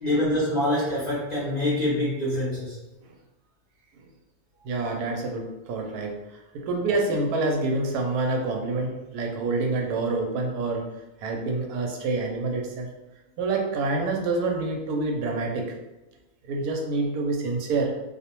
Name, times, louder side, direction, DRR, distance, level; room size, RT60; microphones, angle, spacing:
voice 1, 0.0-2.8, left 1 dB, 40° left, -8 dB, 0.6 m, -25 dB
voice 2, 4.6-10.9 11.2-12.9 13.4-15.7 16.4-17.9, right 3 dB, 90° right, 2 dB, 1.1 m, -27 dB
2.5 x 2.1 x 2.9 m, 1.0 s
omnidirectional pair, 1.6 m